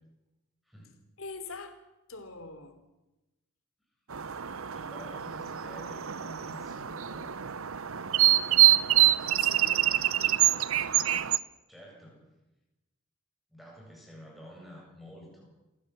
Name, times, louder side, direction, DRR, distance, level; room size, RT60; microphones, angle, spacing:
voice 1, 1.2-1.8 2.1-2.8 9.1-9.9, left 4 dB, 85° left, 9 dB, 3.2 m, -43 dB
sound 1, 4.1-11.4, right 13 dB, 85° right, 0.8 m, -25 dB
voice 2, 4.7-7.3 11.7-12.3 13.5-15.5, equal, ahead, -2 dB, 7.7 m, -49 dB
28.0 x 16.5 x 7.4 m, 1.0 s
head